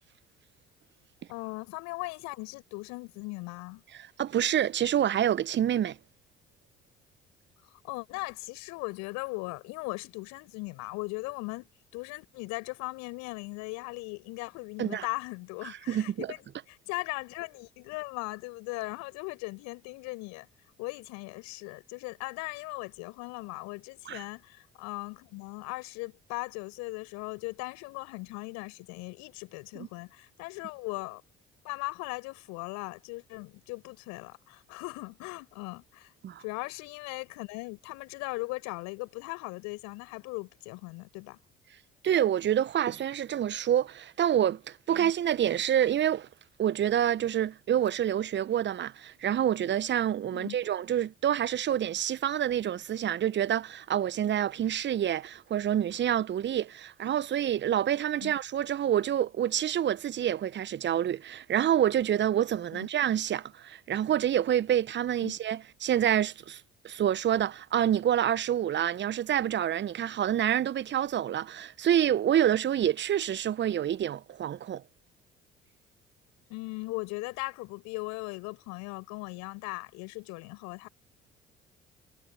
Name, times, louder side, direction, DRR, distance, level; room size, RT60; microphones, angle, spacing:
voice 1, 1.3-3.8 7.6-11.7 11.9-16.4 16.7-20.5 20.8-31.2 31.6-36.1 36.4-41.4 44.9-45.1 50.3-50.6 58.2-58.3 62.7-62.9 65.2-65.4 76.5-80.9, left 25 dB, 65° left, 5.3 m, -38 dB
voice 2, 4.2-6.0 14.8-15.0 15.9-16.3 24.1-24.2 29.8-29.9 36.2-36.4 42.0-46.3 46.6-74.8, right 10 dB, 40° right, 0.9 m, -27 dB
figure-of-eight pair, 50°, 30 cm